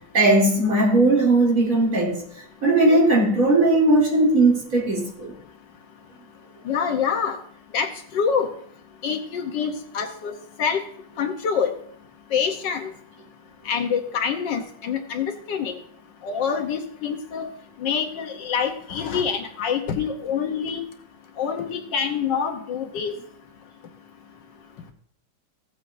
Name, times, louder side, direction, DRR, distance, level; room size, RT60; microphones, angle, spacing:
voice 1, 0.1-2.2 2.6-5.3, right 2 dB, 45° right, -3 dB, 3.4 m, -18 dB
voice 2, 6.7-7.4 7.7-8.5 9.0-10.3 10.6-10.8 11.2-11.7 12.3-12.9 13.7-15.8 16.2-17.5 17.8-20.8 21.4-23.1, left 6 dB, 70° left, 5 dB, 1.5 m, -26 dB
16.0 x 8.1 x 2.6 m, 0.62 s
omnidirectional pair, 2.0 m